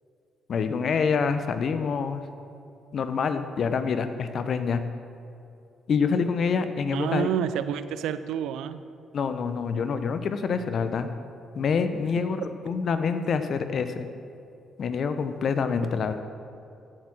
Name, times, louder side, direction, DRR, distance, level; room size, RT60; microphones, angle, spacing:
voice 1, 0.5-2.2 2.9-4.8 5.9-7.3 9.1-11.1 11.5-14.1 14.8-16.2, left 5 dB, 60° left, 10 dB, 1.0 m, -26 dB
voice 2, 6.9-8.8, right 9 dB, 75° right, 13 dB, 0.5 m, -29 dB
16.0 x 7.9 x 6.1 m, 2.6 s
hypercardioid pair, 50°, 0 cm